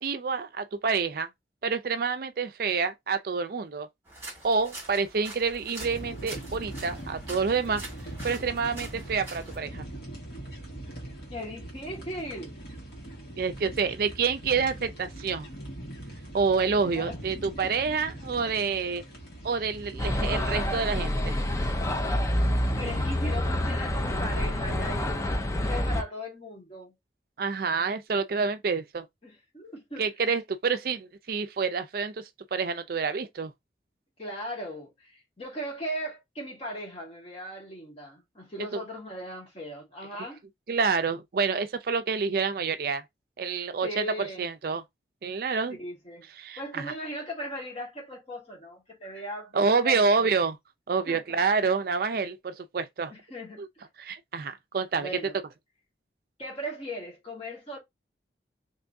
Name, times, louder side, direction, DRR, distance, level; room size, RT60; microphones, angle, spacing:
voice 1, 0.0-1.3 1.6-3.9 4.4-7.8 8.2-9.9 13.4-15.5 16.3-19.0 19.4-21.3 27.4-29.0 30.0-32.2 32.5-33.5 38.7-38.8 40.7-43.0 43.4-44.8 45.2-45.8 46.4-46.9 49.5-50.6 50.9-53.1 53.6-53.7 54.0-55.1, right 5 dB, 55° right, 0.4 m, -28 dB
sound 1, 4.1-9.6, right 2 dB, 15° right, 1.9 m, -44 dB
sound 2, 5.8-23.3, right 1 dB, 65° left, 1.7 m, -42 dB
voice 2, 11.3-12.5 16.9-17.2 17.6-17.7 18.4-18.5 22.8-26.9 29.2-30.1 34.2-40.4 43.5-44.5 45.8-46.3 46.6-50.3 51.1-51.4 53.1-53.6 55.0-55.4 56.4-57.8, equal, 35° left, 1.5 m, -38 dB
sound 3, 20.0-26.0, left 1 dB, 15° left, 0.4 m, -27 dB
3.4 x 3.0 x 2.6 m
head